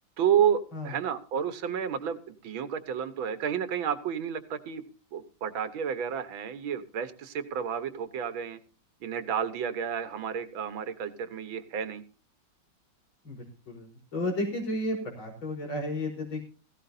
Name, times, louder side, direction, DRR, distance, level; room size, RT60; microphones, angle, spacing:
voice 1, 0.2-4.8 5.1-8.6 9.0-12.0, right 8 dB, 80° right, 2.0 m, -30 dB
voice 2, 13.2-16.4, left 1 dB, 80° left, 4.9 m, -33 dB
16.5 x 16.0 x 2.7 m
omnidirectional pair, 2.1 m